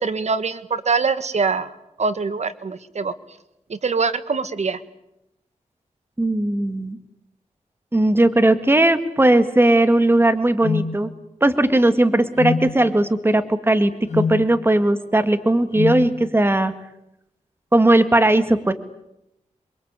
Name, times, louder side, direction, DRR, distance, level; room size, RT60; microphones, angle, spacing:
voice 1, 0.0-3.1 3.7-4.8, right 4 dB, 60° right, 12 dB, 1.7 m, -24 dB
voice 2, 6.2-7.0 7.9-11.1 11.4-16.7 17.7-18.7, right 1 dB, 15° right, 10 dB, 2.1 m, -18 dB
sound 1, 10.6-10.9 12.4-12.7 14.1-14.4 15.7-16.0, left 5 dB, 60° left, 2.9 m, -23 dB
27.5 x 23.0 x 8.4 m, 0.84 s
wide cardioid pair, 75°, 13 cm